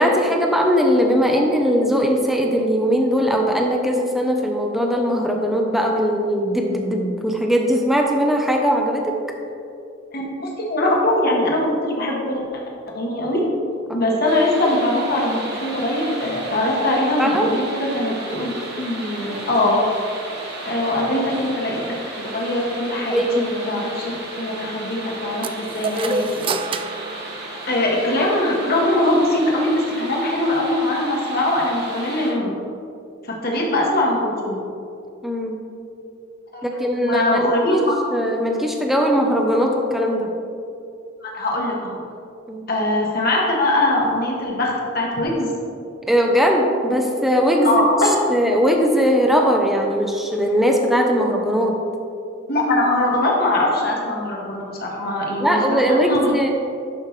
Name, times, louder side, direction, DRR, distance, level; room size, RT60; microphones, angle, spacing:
voice 1, 0.0-9.1 13.9-14.1 17.2-17.6 23.1-23.5 25.9-26.1 33.5-33.6 35.2-35.6 36.6-37.8 38.1-40.3 42.5-42.7 46.1-47.8 48.3-51.8 55.4-56.5, equal, ahead, 1 dB, 0.7 m, -20 dB
voice 2, 10.1-12.5 12.9-13.4 13.9-18.5 18.8-19.8 20.6-21.8 22.2-26.3 27.7-32.5 33.3-34.6 36.5-36.6 36.9-38.0 41.2-42.0 42.7-45.5 47.6-48.1 52.5-56.3, left 1 dB, 50° left, -2 dB, 1.5 m, -22 dB
sound 1, 14.2-32.3, right 2 dB, 55° right, 1.6 m, -35 dB
sound 2, 25.4-28.1, right 3 dB, 25° right, 0.3 m, -28 dB
11.0 x 5.6 x 3.2 m, 2.5 s
head